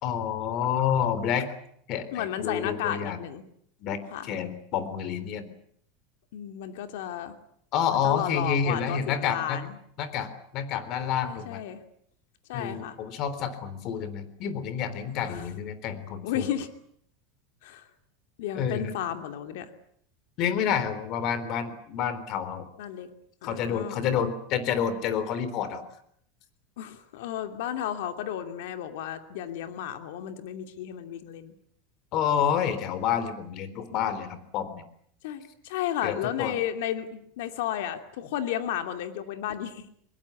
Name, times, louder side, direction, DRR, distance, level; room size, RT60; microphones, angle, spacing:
voice 1, 0.0-1.5 1.9-3.2 3.8-5.5 7.7-9.6 10.0-11.6 12.5-16.5 18.5-18.9 20.4-22.7 23.4-25.8 32.1-34.8 36.0-36.5, left 8 dB, 45° left, 13 dB, 3.8 m, -29 dB
voice 2, 2.1-3.4 4.1-4.3 6.3-7.3 8.0-9.8 11.2-11.8 12.5-13.0 15.3-15.5 16.2-16.7 17.6-17.8 18.4-19.7 22.8-23.1 23.4-24.3 26.8-31.5 35.2-39.9, left 10 dB, 75° left, 7 dB, 2.7 m, -33 dB
24.5 x 22.5 x 8.5 m, 0.67 s
supercardioid pair, 150°, 0 cm